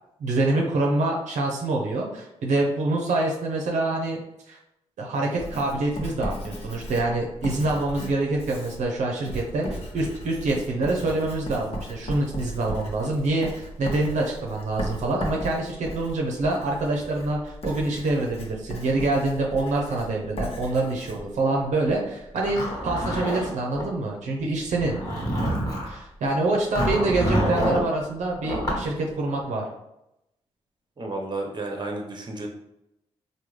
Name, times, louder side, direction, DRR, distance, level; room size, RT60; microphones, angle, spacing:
voice 1, 0.2-4.2 4.5-4.6 5.0-22.6 22.8-24.9 25.9-29.6, right 2 dB, 75° right, -1 dB, 0.6 m, -26 dB
Writing, 5.4-22.0, equal, 55° left, 0.9 m, -37 dB
Zipper (clothing), 22.4-23.9 24.7-25.9 26.8-27.9 28.4-28.9, equal, 30° left, 1.3 m, -26 dB
voice 2, 31.0-32.5, right 2 dB, 35° right, 2 dB, 0.8 m, -32 dB
3.4 x 2.2 x 3.1 m, 0.86 s
supercardioid pair, 55°, 12 cm